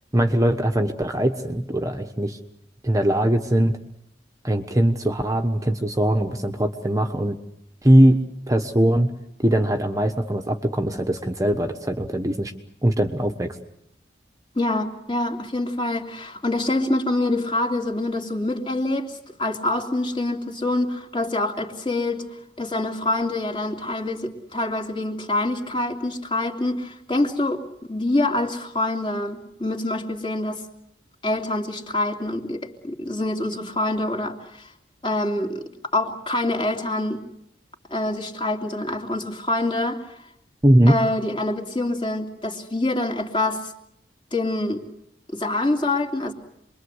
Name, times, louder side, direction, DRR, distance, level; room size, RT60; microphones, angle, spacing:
voice 1, 0.1-2.4 2.8-3.8 4.4-7.4 7.8-8.2 8.5-9.1 9.4-12.5 12.8-13.6 40.6-41.0, right 1 dB, 20° right, 5 dB, 1.3 m, -20 dB
voice 2, 14.5-22.3 22.6-27.6 27.9-30.6 31.2-34.7 35.0-37.2 37.9-40.0 40.9-43.7 44.3-44.8 45.3-46.3, left 2 dB, 25° left, 3 dB, 3.1 m, -25 dB
27.5 x 23.0 x 8.0 m, 0.77 s
head